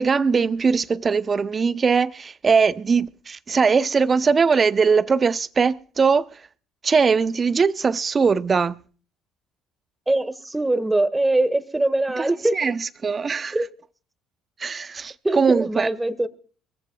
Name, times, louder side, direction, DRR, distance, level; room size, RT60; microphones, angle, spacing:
voice 1, 0.0-6.3 6.8-8.8 12.2-13.7 14.6-15.9, right 5 dB, 35° right, 0.8 m, -21 dB
voice 2, 10.1-12.5 13.5-13.7 15.2-16.3, right 2 dB, 15° right, 1.7 m, -22 dB
24.0 x 15.0 x 2.4 m
hypercardioid pair, 65°, 0 cm